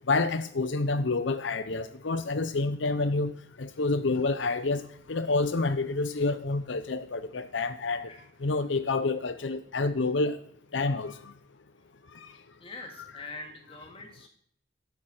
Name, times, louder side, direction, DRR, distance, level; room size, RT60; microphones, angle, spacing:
voice 1, 0.1-3.3 3.6-4.8 5.1-8.1 8.4-10.4 10.7-11.1, left 3 dB, 80° left, 0.7 m, -28 dB
voice 2, 12.6-14.3, left 3 dB, 30° left, 2.5 m, -43 dB
13.0 x 9.8 x 6.5 m
head